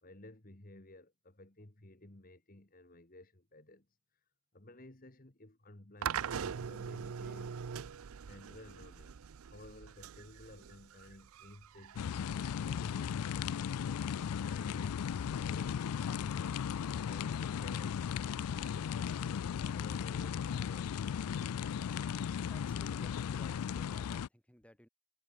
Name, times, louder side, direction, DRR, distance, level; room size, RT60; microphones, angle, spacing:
voice 1, 0.0-3.9 4.1-4.3 4.5-7.7 8.2-16.6 17.1-21.2, left 1 dB, 40° left, 1.8 m, -55 dB
sound 1, 6.0-13.1, right 7 dB, 75° right, 0.5 m, -42 dB
sound 2, 12.0-24.3, left 7 dB, 90° left, 0.4 m, -36 dB
voice 2, 22.5-24.9, equal, 5° left, 7.4 m, -59 dB
head